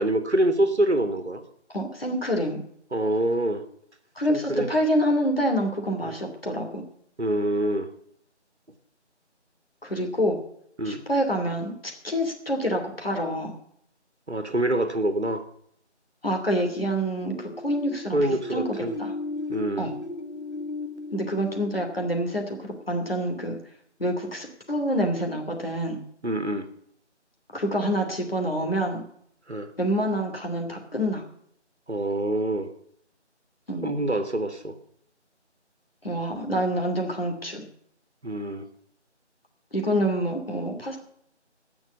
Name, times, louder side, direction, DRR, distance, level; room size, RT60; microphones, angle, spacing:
voice 1, 0.0-1.4 2.9-3.6 4.3-4.7 6.0-6.1 7.2-7.9 10.8-11.0 14.3-15.4 18.1-18.9 19.5-19.9 26.2-26.7 29.5-29.7 31.9-32.7 33.8-34.8 38.2-38.7, right 1 dB, 70° right, 9 dB, 1.7 m, -25 dB
voice 2, 1.7-2.6 4.2-6.8 9.8-10.4 10.8-13.5 16.2-18.6 19.0-19.1 19.8-19.9 21.1-23.6 24.0-26.0 27.5-29.0 29.8-31.2 33.7-34.0 36.0-37.7 39.7-41.0, equal, 55° left, 2 dB, 2.9 m, -27 dB
sound 1, 17.2-22.9, left 2 dB, 70° left, 1.9 m, -36 dB
17.0 x 6.2 x 8.2 m, 0.70 s
figure-of-eight pair, 170°, 35 cm